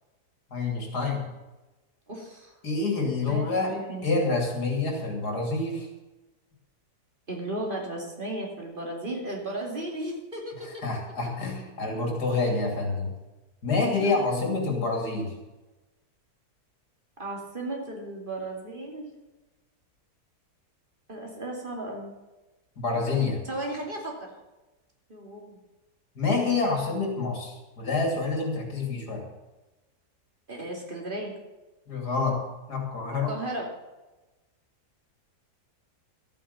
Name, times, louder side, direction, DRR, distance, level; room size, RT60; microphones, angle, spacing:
voice 1, 0.5-1.2 2.6-3.7 4.0-5.9 10.6-13.1 13.6-15.3 22.8-23.4 26.2-29.2 31.9-32.4 32.7-33.3, left 3 dB, 80° left, 2 dB, 3.4 m, -27 dB
voice 2, 2.1-2.5 3.3-4.2 7.3-10.8 14.0-14.5 17.2-19.1 21.1-22.1 23.4-24.3 25.1-25.6 30.5-31.3 33.3-33.7, right 1 dB, 30° right, 0 dB, 2.8 m, -35 dB
13.0 x 9.2 x 6.9 m, 1.1 s
omnidirectional pair, 1.7 m